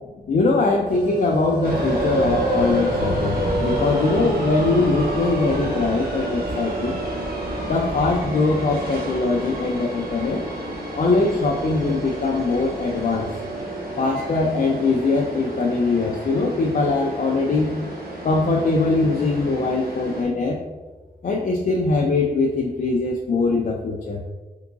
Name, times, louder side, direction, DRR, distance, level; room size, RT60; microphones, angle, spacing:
voice 1, 0.3-7.0 7.7-10.4 10.9-13.3 14.0-17.7 18.2-20.6 21.2-24.2, left 3 dB, 55° left, 0 dB, 0.4 m, -22 dB
sound 1, 0.9-15.7 16.0-16.1, right 4 dB, 30° right, 1.1 m, -34 dB
sound 2, 1.6-20.2, equal, 70° right, 1.0 m, -29 dB
3.7 x 3.6 x 2.5 m, 1.2 s
wide cardioid pair, 110°, 16 cm